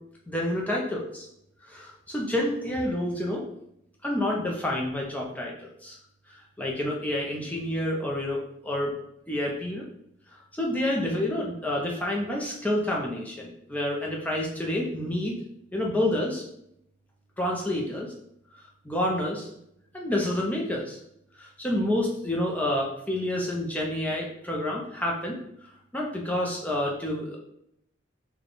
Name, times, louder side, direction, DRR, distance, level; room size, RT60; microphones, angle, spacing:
voice 1, 0.3-1.3 1.7-3.4 4.0-6.0 6.6-8.9 9.3-9.8 10.5-15.4 15.7-16.4 17.4-18.1 18.8-19.5 19.9-21.0 21.4-25.4 25.9-27.4, left 1 dB, 10° left, -2 dB, 0.6 m, -28 dB
3.4 x 2.3 x 3.9 m, 0.75 s
head